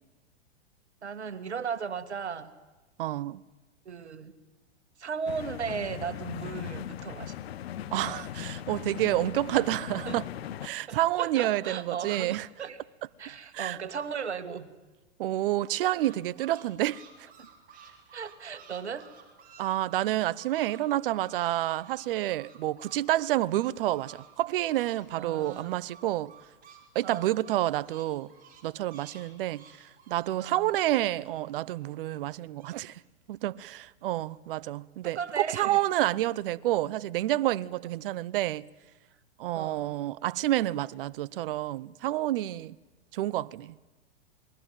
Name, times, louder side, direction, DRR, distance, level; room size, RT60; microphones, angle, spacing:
voice 1, 1.0-2.5 3.9-4.3 5.0-7.4 10.1-10.2 10.8-12.8 13.2-14.7 17.4-17.5 18.1-19.1 25.2-25.8 27.0-27.4 30.4-30.7 35.0-35.8 39.5-39.9, right 6 dB, 85° right, 2.0 m, -36 dB
voice 2, 3.0-3.4 7.9-10.2 10.6-12.5 13.5-13.8 15.2-17.0 19.6-26.3 26.9-28.3 28.6-33.0 33.3-38.7 39.4-42.7 43.1-43.7, right 15 dB, 55° right, 0.8 m, -29 dB
sound 1, 5.3-10.7, left 10 dB, 65° left, 1.3 m, -39 dB
sound 2, 15.6-20.8 21.1-25.0 25.2-31.7 32.1-32.8, right 7 dB, 25° right, 5.8 m, -54 dB
28.0 x 21.0 x 9.2 m
hypercardioid pair, 110°, 33 cm